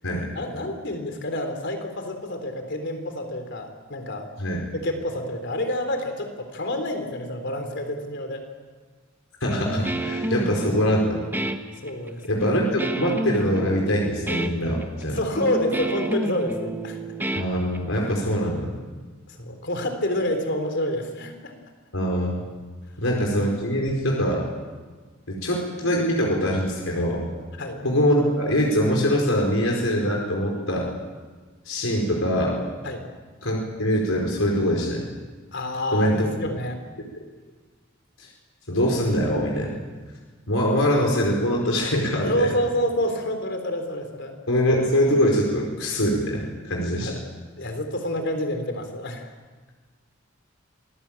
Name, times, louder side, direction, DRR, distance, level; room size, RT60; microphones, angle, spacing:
voice 1, 0.3-4.3 4.8-8.4 11.8-12.4 15.1-17.0 19.3-21.5 27.6-27.8 32.8-33.0 35.5-36.8 42.3-44.3 47.0-47.1 47.6-49.3, left 1 dB, 60° left, 6 dB, 3.7 m, -28 dB
voice 2, 9.4-11.2 12.2-15.2 17.3-18.7 21.9-22.4 23.0-24.5 25.3-27.2 27.8-30.9 31.6-32.6 33.4-35.1 35.9-36.3 37.1-37.2 38.2-38.3 38.7-39.8 40.5-42.5 44.5-47.1, equal, 90° left, -1 dB, 4.8 m, -23 dB
Guitar, 9.5-18.1, right 1 dB, 10° right, 1.3 m, -30 dB
27.0 x 20.0 x 8.9 m, 1.4 s
head